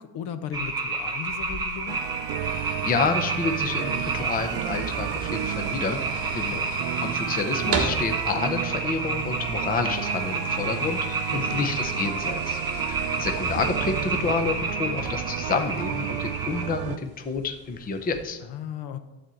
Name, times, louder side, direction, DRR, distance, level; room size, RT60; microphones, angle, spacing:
voice 1, 0.0-2.0 6.5-6.7 11.3-11.7 18.4-19.0, left 9 dB, 55° left, 10 dB, 0.9 m, -36 dB
sound 1, 0.5-16.6, right 3 dB, 10° right, 1.2 m, -30 dB
sound 2, 1.2-18.2, right 4 dB, 30° right, 1.4 m, -39 dB
sound 3, 1.9-17.0, right 12 dB, 60° right, 0.5 m, -33 dB
voice 2, 2.4-6.1 6.3-6.6 7.0-18.4, left 4 dB, 20° left, 6 dB, 0.7 m, -29 dB
12.0 x 4.3 x 7.6 m, 1.0 s
cardioid pair, 150°, 47 cm